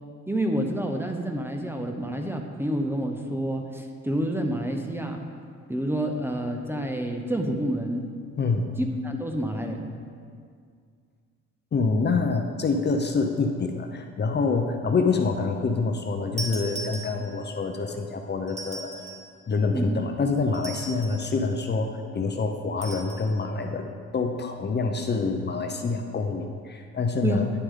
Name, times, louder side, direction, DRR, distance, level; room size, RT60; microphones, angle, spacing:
voice 1, 0.3-5.2 5.7-8.0 8.8-9.9 17.2-17.3 19.7-20.0 27.2-27.5, right 1 dB, 5° right, 3 dB, 0.8 m, -28 dB
voice 2, 8.4-8.7 11.7-18.9 19.5-27.5, left 4 dB, 35° left, 4 dB, 0.7 m, -26 dB
sound 1, 16.4-17.5 18.5-19.3 20.5-21.3 22.8-23.3, right 2 dB, 25° right, 1.7 m, -38 dB
10.5 x 6.7 x 3.8 m, 2.1 s
cardioid pair, 90°, 30 cm